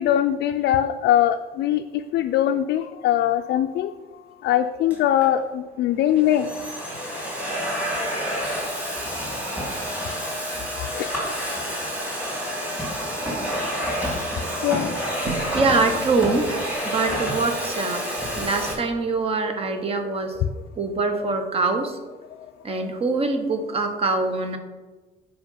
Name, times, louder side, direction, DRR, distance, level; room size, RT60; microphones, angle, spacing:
voice 1, 0.0-3.9 4.4-6.5 10.8-11.1 14.6-15.3 20.0-20.1 22.7-22.8, left 11 dB, 75° left, 5 dB, 0.4 m, -22 dB
Domestic sounds home sounds, 4.9-5.3 6.0-18.7, equal, 10° right, 2.6 m, -28 dB
voice 2, 15.0-16.6 16.8-18.0 18.4-20.4 20.7-22.0 22.6-24.6, right 3 dB, 35° right, 6 dB, 1.0 m, -24 dB
7.9 x 5.0 x 5.5 m, 1.3 s
cardioid pair, 155°, 18 cm